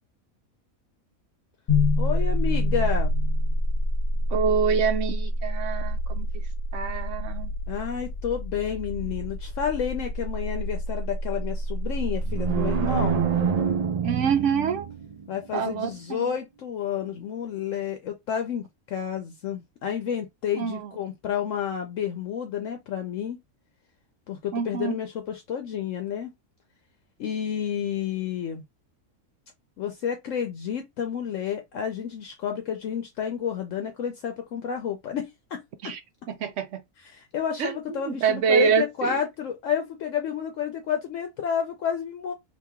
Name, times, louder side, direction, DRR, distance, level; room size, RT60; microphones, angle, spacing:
sound 1, 1.7-13.7, left 1 dB, 45° left, 0.8 m, -27 dB
voice 1, 2.0-3.1 7.7-13.3 15.3-23.4 24.3-26.3 27.2-28.6 29.8-36.0 37.0-42.3, left 8 dB, 70° left, 0.9 m, -30 dB
voice 2, 4.3-6.3 6.7-7.5 14.0-14.9 15.5-16.3 20.6-20.9 24.5-25.0 35.8-36.0 36.3-36.8 37.6-37.8 38.1-39.2, right 6 dB, 70° right, 0.9 m, -26 dB
sound 2, 12.0-15.2, right 7 dB, 85° right, 0.3 m, -26 dB
2.9 x 2.6 x 3.5 m
omnidirectional pair, 1.5 m